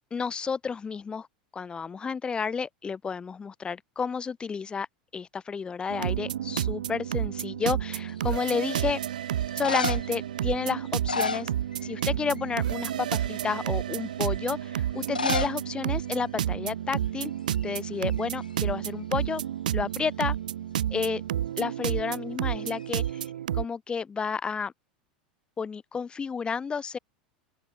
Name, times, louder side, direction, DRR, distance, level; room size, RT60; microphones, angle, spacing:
voice 1, 0.1-1.3 1.5-4.9 5.1-9.0 9.6-11.5 11.8-17.3 17.6-19.4 19.7-20.4 20.9-21.2 21.6-23.0 23.5-24.7 25.6-27.0, left 5 dB, 20° left, 3.7 m, -31 dB
sound 1, 5.9-23.6, right 11 dB, 70° right, 2.1 m, -30 dB
sound 2, 8.0-8.5 9.4-10.2 10.9-12.1 12.4-12.7 13.3-13.4 15.0-15.6 15.9-16.0 16.2-16.3 17.0-17.2 17.5-18.7 22.7-23.3, left 4 dB, 85° left, 3.8 m, -32 dB
open air
figure-of-eight pair, 85°, 4 cm